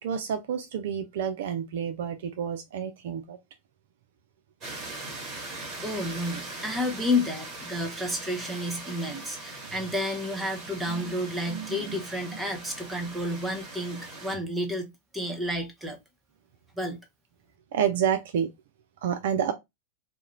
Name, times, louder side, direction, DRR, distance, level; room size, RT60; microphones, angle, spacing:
voice 1, 0.0-3.4 10.9-11.0 11.5-12.0 17.7-18.5 19.0-19.5, right 8 dB, 55° right, 0.3 m, -29 dB
sound 1, 4.6-14.4, right 2 dB, 30° right, 1.3 m, -41 dB
voice 2, 5.8-16.0 16.8-17.0, left 1 dB, 5° right, 0.7 m, -31 dB
2.4 x 2.1 x 2.9 m
figure-of-eight pair, 90°, 0 cm